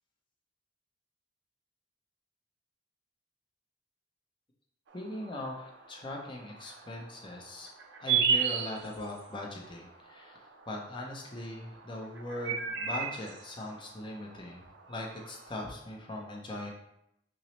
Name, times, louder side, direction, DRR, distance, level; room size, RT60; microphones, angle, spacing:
voice 1, 4.9-16.7, left 1 dB, 25° left, -1 dB, 0.6 m, -40 dB
sound 1, 4.9-15.6, right 6 dB, 70° right, 0.5 m, -36 dB
5.9 x 2.0 x 3.1 m, 0.81 s
head